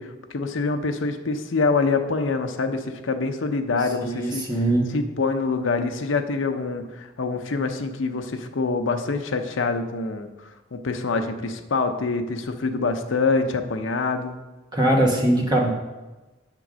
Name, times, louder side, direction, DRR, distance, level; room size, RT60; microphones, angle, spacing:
voice 1, 0.0-4.5 4.9-14.4, left 4 dB, 85° left, 6 dB, 0.7 m, -25 dB
voice 2, 4.0-4.9 14.7-15.7, right 1 dB, 20° right, -1 dB, 1.2 m, -21 dB
8.1 x 3.7 x 6.2 m, 1.1 s
head